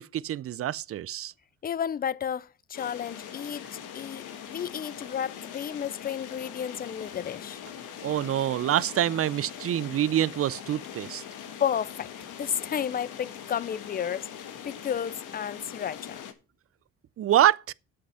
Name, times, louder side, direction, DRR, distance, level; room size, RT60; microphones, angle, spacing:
voice 1, 0.0-1.3 8.0-11.2 17.2-17.7, right 12 dB, 50° right, 0.5 m, -26 dB
voice 2, 1.6-3.7 3.9-7.6 11.6-14.3 14.6-16.2, left 8 dB, 30° left, 0.4 m, -32 dB
sound 1, 2.7-16.3, left 8 dB, 90° left, 1.4 m, -42 dB
8.3 x 7.8 x 5.7 m
cardioid pair, 90°, 30 cm